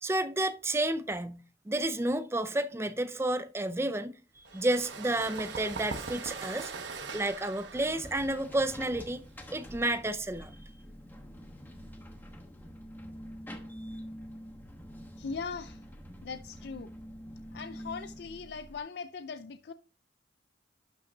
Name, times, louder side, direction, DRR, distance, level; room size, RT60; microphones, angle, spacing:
voice 1, 0.0-1.4 1.7-4.1 4.5-6.7 7.1-9.2 9.5-10.5, right 1 dB, 15° right, 0.4 m, -31 dB
sound 1, 4.4-9.9, right 4 dB, 80° right, 1.0 m, -41 dB
sound 2, 7.7-18.8, equal, 10° left, 1.1 m, -46 dB
voice 2, 15.2-15.8 16.2-16.9 17.5-19.7, left 5 dB, 60° left, 0.4 m, -40 dB
11.5 x 5.6 x 2.7 m
head